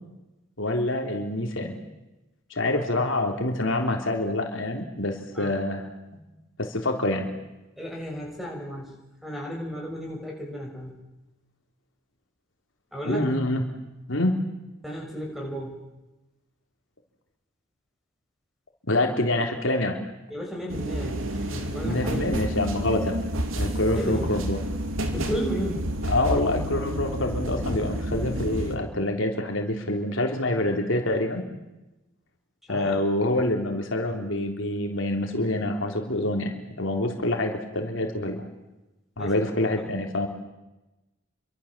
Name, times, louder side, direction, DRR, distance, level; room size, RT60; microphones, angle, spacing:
voice 1, 0.6-1.7 2.5-5.8 6.6-7.3 13.0-13.6 14.1-14.4 18.9-20.0 21.8-23.2 23.5-24.6 26.1-31.4 32.7-38.5 39.2-40.3, left 1 dB, 65° left, 3 dB, 3.5 m, -26 dB
voice 2, 7.8-11.0 12.9-13.2 14.8-15.8 20.3-22.3 23.9-24.3 25.1-26.0 32.7-33.0 39.2-39.7, equal, ahead, 0 dB, 6.7 m, -34 dB
sound 1, 20.7-28.8, equal, 75° right, 3.1 m, -29 dB
28.5 x 24.5 x 7.5 m, 1.0 s
head